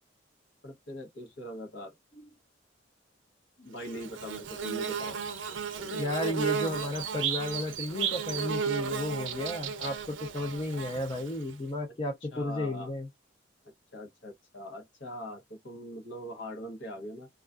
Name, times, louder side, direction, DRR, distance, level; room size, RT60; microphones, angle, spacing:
voice 1, 0.6-1.9 3.6-5.3 5.7-6.0 12.3-12.9 13.9-17.3, equal, 70° left, 0.9 m, -42 dB
Bird / Buzz, 3.8-11.5, right 7 dB, 75° right, 0.5 m, -34 dB
voice 2, 5.9-13.1, left 1 dB, 25° left, 0.4 m, -33 dB
2.3 x 2.2 x 2.4 m
head